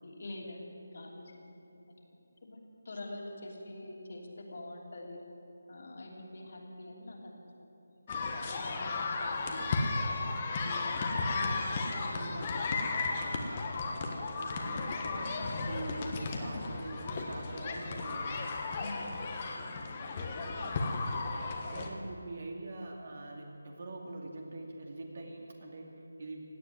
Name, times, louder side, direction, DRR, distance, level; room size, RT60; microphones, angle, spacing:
voice 1, 0.0-1.4 2.4-5.2 5.7-7.4 7.9-9.8 10.5-13.2 18.8-19.2, left 1 dB, 55° left, -1 dB, 3.0 m, -45 dB
sound 1, 8.1-21.9, left 3 dB, 30° left, 1.4 m, -34 dB
voice 2, 12.1-12.5 14.3-15.4 15.6-18.5 20.6-21.3 21.7-26.4, right 2 dB, 50° right, 1 dB, 2.5 m, -44 dB
17.0 x 8.8 x 9.2 m, 2.8 s
figure-of-eight pair, 160°, 0 cm